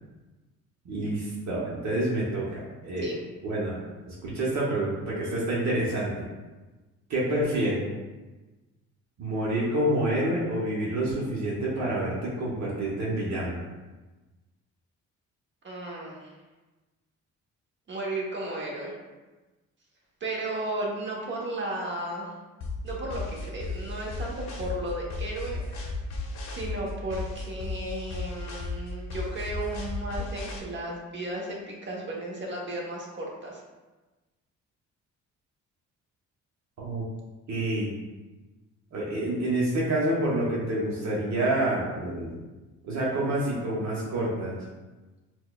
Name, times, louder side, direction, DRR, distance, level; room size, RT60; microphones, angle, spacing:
voice 1, 0.8-3.2 3.4-3.8 4.0-6.2 7.1-7.9 9.2-13.6 36.8-37.0 37.5-38.0 38.9-42.4 42.8-44.6, right 1 dB, 65° right, -5 dB, 0.9 m, -28 dB
voice 2, 15.6-16.3 17.9-18.9 20.2-22.3 22.8-25.9 26.5-33.6, right 1 dB, 40° right, -3 dB, 1.0 m, -34 dB
sound 1, 22.6-30.6, left 3 dB, 65° left, 0.7 m, -35 dB
4.5 x 2.2 x 2.3 m, 1.2 s
cardioid pair, 90°, 30 cm